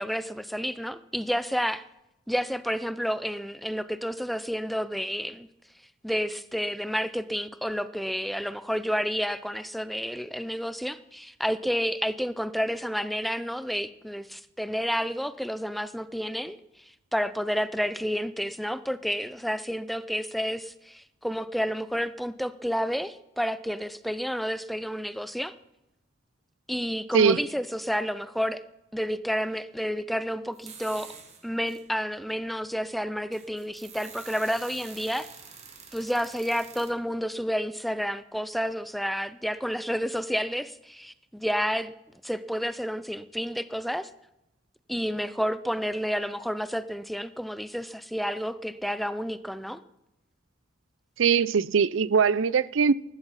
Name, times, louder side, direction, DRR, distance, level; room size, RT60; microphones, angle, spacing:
voice 1, 0.0-1.9 2.3-5.5 6.0-16.6 17.1-25.5 26.7-28.6 28.9-31.1 31.4-35.3 35.9-41.9 42.2-44.1 44.9-49.8, equal, ahead, 0.4 m, -30 dB
sound 1, 30.5-31.9 32.5-32.6 33.1-36.9, right 6 dB, 35° right, 2.0 m, -47 dB
voice 2, 51.2-52.9, right 6 dB, 75° right, 0.5 m, -21 dB
20.0 x 11.5 x 4.1 m
head